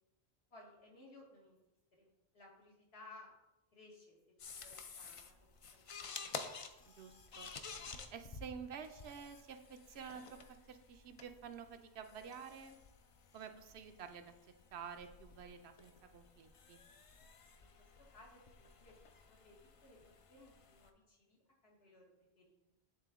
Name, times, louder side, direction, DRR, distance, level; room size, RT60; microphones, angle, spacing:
voice 1, 0.5-1.6 1.9-3.3 3.7-5.3 5.7-6.3 17.6-19.0 19.3-19.6 19.8-20.0 20.3-22.1 22.4-22.6, left 2 dB, 80° left, -2 dB, 1.8 m, -60 dB
sound 1, 4.4-20.9, left 5 dB, 50° left, 0.4 m, -52 dB
voice 2, 6.9-7.5 8.1-12.8 13.3-14.3 14.7-16.8, right 7 dB, 85° right, 7 dB, 0.9 m, -50 dB
9.0 x 3.7 x 3.6 m, 0.95 s
omnidirectional pair, 1.0 m